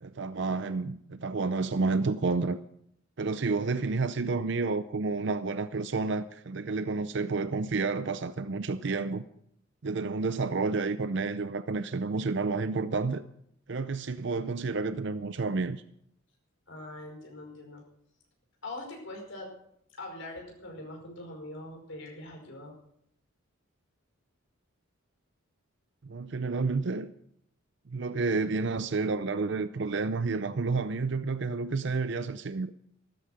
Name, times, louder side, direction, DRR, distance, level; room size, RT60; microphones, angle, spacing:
voice 1, 0.0-2.6 3.2-9.2 9.8-13.2 13.7-15.8 26.0-27.1 27.9-32.7, right 4 dB, 55° right, 0.5 m, -30 dB
voice 2, 16.7-17.8 18.6-19.5 20.0-22.7, left 2 dB, 65° left, 5.2 m, -42 dB
13.5 x 13.0 x 6.4 m
head